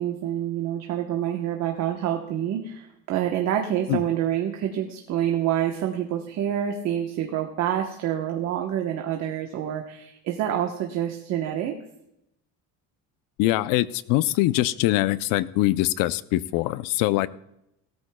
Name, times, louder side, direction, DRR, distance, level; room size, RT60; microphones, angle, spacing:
voice 1, 0.0-11.8, right 10 dB, 55° right, 3 dB, 1.1 m, -27 dB
voice 2, 13.4-17.3, left 16 dB, 90° left, 17 dB, 0.6 m, -23 dB
17.5 x 13.0 x 2.2 m, 0.85 s
cardioid pair, 165°, 32 cm